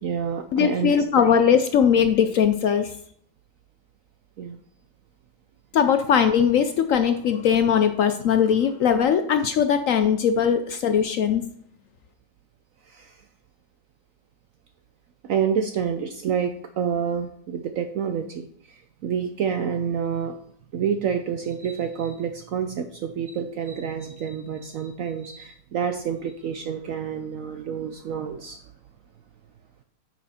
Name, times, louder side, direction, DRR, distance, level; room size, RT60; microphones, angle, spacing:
voice 1, 0.0-1.3 4.4-4.6 12.9-13.2 15.2-20.3 20.7-28.6, right 7 dB, 65° right, 7 dB, 0.9 m, -28 dB
voice 2, 0.5-2.9 5.7-11.4, left 7 dB, 70° left, 8 dB, 0.8 m, -20 dB
9.1 x 6.0 x 4.3 m, 0.64 s
omnidirectional pair, 1.8 m